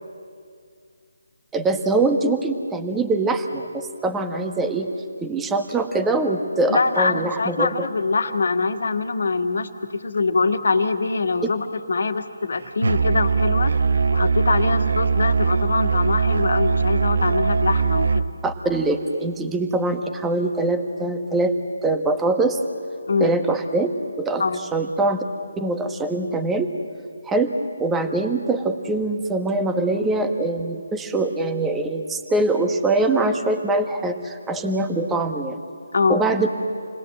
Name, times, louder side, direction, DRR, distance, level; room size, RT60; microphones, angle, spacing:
voice 1, 1.5-4.9 5.2-7.9 18.4-21.5 21.8-22.6 23.2-25.2 25.6-26.7 27.3-27.5 27.8-35.6 36.1-36.5, right 2 dB, 10° right, 6 dB, 1.3 m, -23 dB
voice 2, 6.7-13.7 14.1-18.3 23.1-23.3 24.4-24.6 35.9-36.2, left 4 dB, 65° left, 6 dB, 1.9 m, -23 dB
Musical instrument, 12.8-18.3, right 5 dB, 65° right, 0.8 m, -20 dB
28.5 x 20.5 x 7.7 m, 2.2 s
figure-of-eight pair, 150°, 0 cm